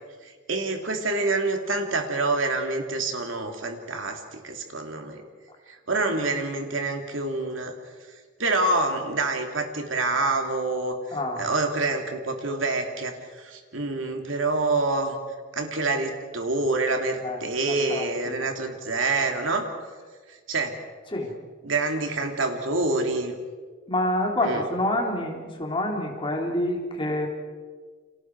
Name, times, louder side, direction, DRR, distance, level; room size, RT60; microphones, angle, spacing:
voice 1, 0.2-5.2 5.7-7.7 8.4-15.1 15.5-19.6 20.3-20.7 21.6-23.3 24.4-24.6, right 3 dB, 75° right, 4 dB, 3.0 m, -27 dB
voice 2, 11.1-11.5 17.2-17.4 17.9-18.5 21.1-21.3 23.9-27.3, left 1 dB, 25° left, 1 dB, 3.6 m, -27 dB
29.5 x 27.0 x 4.8 m, 1.5 s
head